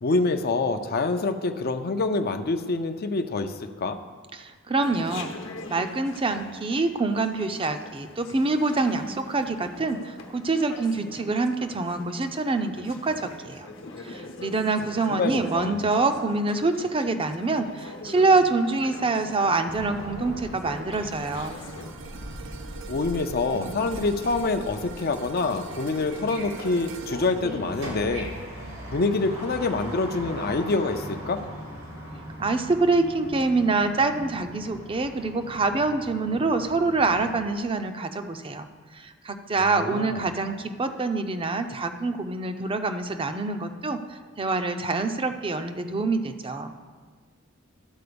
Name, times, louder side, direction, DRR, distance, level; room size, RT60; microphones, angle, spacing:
voice 1, 0.0-4.0 15.1-15.8 22.9-28.3 28.9-31.4 39.8-40.3, left 3 dB, 50° left, 7 dB, 0.6 m, -26 dB
voice 2, 4.3-5.3 5.7-13.7 14.0-21.6 32.4-38.7 38.9-46.8, right 3 dB, 25° right, 7 dB, 0.6 m, -26 dB
Chatter, 4.8-21.9, left 2 dB, 65° left, 1.0 m, -43 dB
sound 1, 19.6-37.4, equal, 85° right, 2.5 m, -39 dB
sound 2, 21.1-29.5 29.9-30.1, right 6 dB, 70° right, 0.6 m, -45 dB
12.0 x 4.3 x 6.9 m, 1.5 s
head